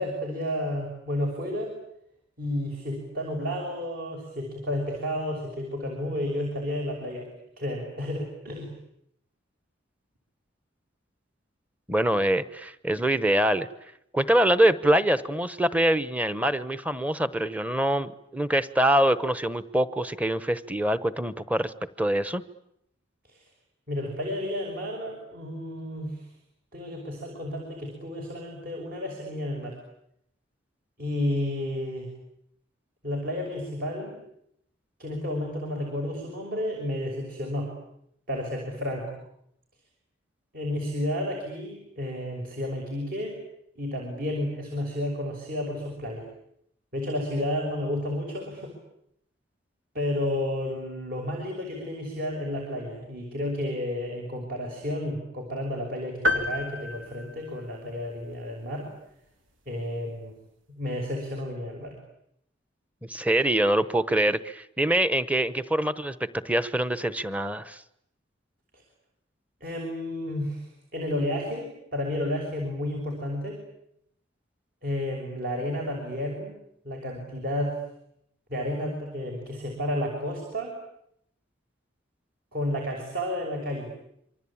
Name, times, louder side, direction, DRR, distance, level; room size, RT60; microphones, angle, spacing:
voice 1, 0.0-1.8 2.4-7.3 7.6-8.7 23.3-23.4 23.9-26.3 26.7-29.8 31.0-32.1 33.0-34.2 35.0-37.7 38.3-39.2 40.5-43.4 43.8-46.3 46.9-48.7 49.9-58.9 59.7-60.4 60.8-62.0 69.6-73.6 74.8-76.5 76.8-77.8 78.5-80.7 82.5-83.9, left 1 dB, 50° right, 2 dB, 6.2 m, -31 dB
voice 2, 11.9-13.7 14.1-22.4 63.0-67.8, right 1 dB, 10° right, 14 dB, 1.0 m, -24 dB
sound 1, 56.2-58.0, left 1 dB, 85° right, 2.8 m, -29 dB
27.5 x 24.5 x 8.7 m, 0.77 s
head